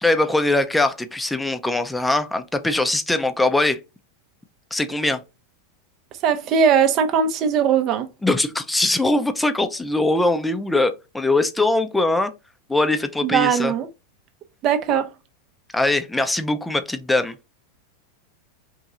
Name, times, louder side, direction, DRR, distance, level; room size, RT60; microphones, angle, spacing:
voice 1, 0.0-3.8 4.7-5.2 8.2-12.3 12.7-13.7 15.7-17.4, left 2 dB, 5° left, 0.5 m, -21 dB
voice 2, 6.2-8.1 13.2-13.9 14.6-15.1, right 7 dB, 45° right, 0.6 m, -19 dB
2.9 x 2.7 x 3.6 m
hypercardioid pair, 90°, 0 cm